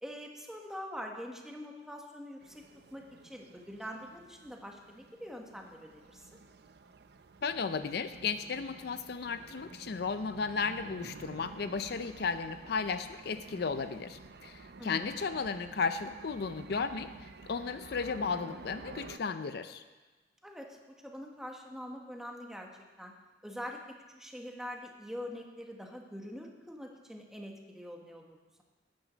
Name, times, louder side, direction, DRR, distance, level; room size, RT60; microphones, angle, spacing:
voice 1, 0.0-2.6 2.9-6.2 14.8-15.1 20.4-20.8 21.0-22.7 23.0-23.1 23.4-23.8 24.1-28.6, equal, 5° right, 1 dB, 1.3 m, -44 dB
sound 1, 2.4-19.2, right 3 dB, 65° right, 0.6 m, -51 dB
voice 2, 7.4-19.8, left 5 dB, 65° left, 11 dB, 0.5 m, -34 dB
13.0 x 9.2 x 5.0 m, 1.2 s
head